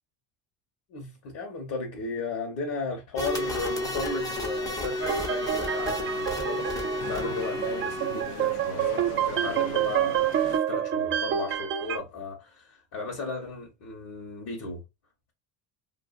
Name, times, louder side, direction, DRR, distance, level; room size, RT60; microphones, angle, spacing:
voice 1, 0.9-14.8, left 3 dB, 60° left, 1.2 m, -35 dB
sound 1, 3.2-8.5, equal, 10° left, 0.6 m, -32 dB
sound 2, 3.4-10.6, left 7 dB, 75° left, 0.7 m, -41 dB
sound 3, 5.0-12.0, right 10 dB, 30° right, 0.4 m, -28 dB
2.6 x 2.4 x 2.4 m
supercardioid pair, 100°, 42 cm